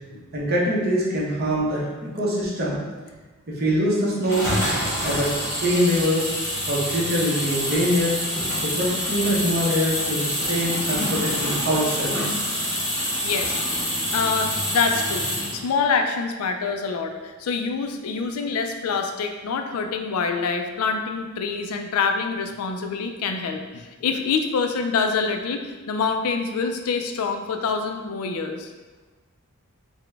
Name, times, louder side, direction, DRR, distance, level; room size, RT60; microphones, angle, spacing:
voice 1, 0.3-1.8 2.1-2.8 3.5-4.5 5.0-5.3 5.6-6.2 6.7-8.1 8.6-12.2, equal, 45° right, -5 dB, 0.8 m, -23 dB
sound 1, 4.2-15.6, equal, 10° left, 1.1 m, -26 dB
voice 2, 13.2-28.7, left 5 dB, 85° left, 6 dB, 0.4 m, -26 dB
3.9 x 2.1 x 3.4 m, 1.3 s
head